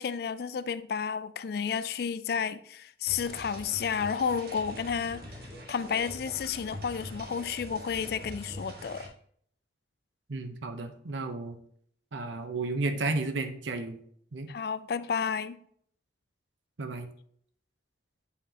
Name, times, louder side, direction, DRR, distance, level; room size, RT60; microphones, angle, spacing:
voice 1, 0.0-5.4 5.7-9.1 14.5-15.6, left 6 dB, 55° left, 0.3 m, -31 dB
sound 1, 3.1-9.1, equal, 55° right, 1.4 m, -44 dB
voice 2, 10.3-11.6 12.1-14.0 14.3-14.5 16.8-17.1, right 3 dB, 85° right, 0.8 m, -33 dB
8.3 x 5.0 x 2.8 m
head